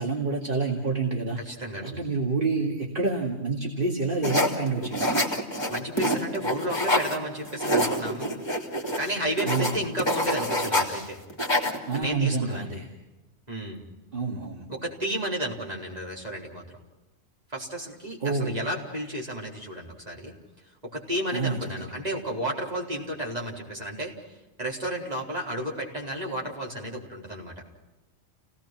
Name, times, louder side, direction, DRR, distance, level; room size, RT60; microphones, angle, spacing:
voice 1, 0.0-1.4 1.8-5.2 9.4-9.8 11.9-12.9 14.1-14.7 18.2-18.7 21.3-21.9, right 3 dB, 55° right, 0 dB, 2.5 m, -28 dB
voice 2, 1.4-1.9 5.7-8.4 9.0-11.2 11.9-12.7 13.5-13.8 14.7-16.6 17.5-20.3 20.8-24.1 24.6-27.5, right 1 dB, 35° right, -2 dB, 4.6 m, -32 dB
sound 1, 4.2-7.2 7.5-11.0 11.3-12.0, equal, 25° left, 2.9 m, -26 dB
30.0 x 18.5 x 6.1 m, 1.0 s
omnidirectional pair, 1.1 m